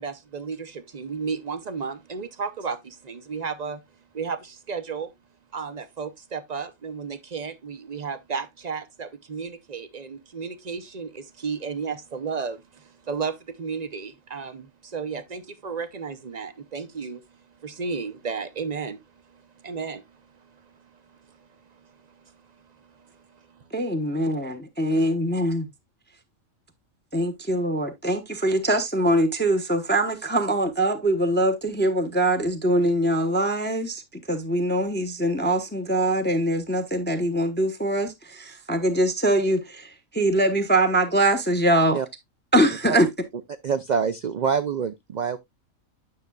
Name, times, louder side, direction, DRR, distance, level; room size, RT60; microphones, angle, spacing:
voice 1, 0.0-3.8 4.1-5.1 5.5-17.2 17.6-19.0 19.3-20.0 20.6-20.7 21.3-21.4 21.8-21.9 22.9-23.6, right 5 dB, 45° right, 0.6 m, -33 dB
voice 2, 23.7-25.7 27.1-34.0 34.3-42.0 42.5-43.1, right 1 dB, 10° left, 0.8 m, -23 dB
voice 3, 43.6-45.4, right 6 dB, 90° right, 0.3 m, -25 dB
9.7 x 6.6 x 2.3 m
omnidirectional pair, 1.4 m